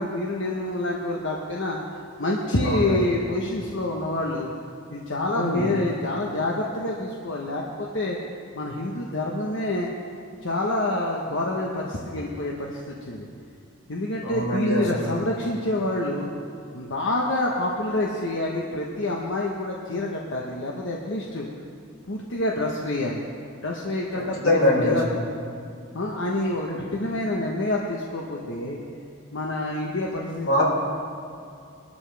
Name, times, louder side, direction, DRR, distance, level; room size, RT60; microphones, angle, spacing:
voice 1, 0.0-1.8 2.2-4.5 4.9-8.2 8.5-9.9 10.4-13.3 13.9-16.3 16.7-21.4 22.1-23.2 23.6-25.0 25.9-28.8 29.3-30.6, left 1 dB, 65° left, -2 dB, 1.1 m, -27 dB
voice 2, 2.6-2.9 5.3-5.7 14.2-15.1 24.1-25.0 26.7-26.8 30.4-30.6, left 1 dB, 90° left, -5 dB, 4.3 m, -23 dB
21.5 x 12.5 x 3.5 m, 2.5 s
head